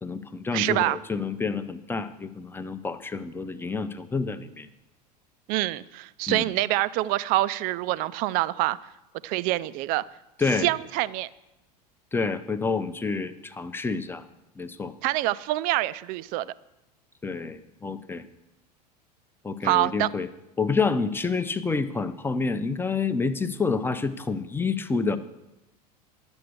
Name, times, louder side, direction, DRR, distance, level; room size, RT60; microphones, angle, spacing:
voice 1, 0.0-4.7 6.3-6.5 10.4-10.7 12.1-14.2 14.6-14.9 17.2-18.2 19.4-20.3 20.6-25.2, left 4 dB, 10° left, 10 dB, 0.7 m, -28 dB
voice 2, 0.5-1.0 5.5-8.8 9.2-10.0 10.6-11.3 15.0-16.5 19.6-20.1, right 17 dB, 45° right, 17 dB, 0.5 m, -25 dB
11.5 x 7.6 x 6.7 m, 0.96 s
figure-of-eight pair, 80°, 21 cm